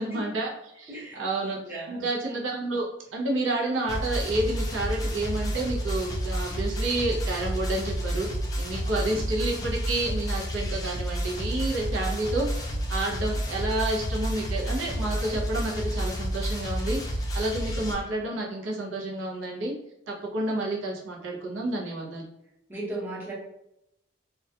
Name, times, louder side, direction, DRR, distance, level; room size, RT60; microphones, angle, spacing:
voice 1, 0.0-1.6 1.9-2.9 3.1-8.3 8.6-19.7 20.1-22.3, right 2 dB, 80° right, -2 dB, 0.6 m, -30 dB
voice 2, 0.9-1.2 1.6-2.0 8.8-9.0 22.7-23.3, right 2 dB, 10° right, -8 dB, 0.8 m, -37 dB
sound 1, 3.9-17.9, equal, 20° left, 0.4 m, -30 dB
2.2 x 2.2 x 2.7 m, 0.83 s
head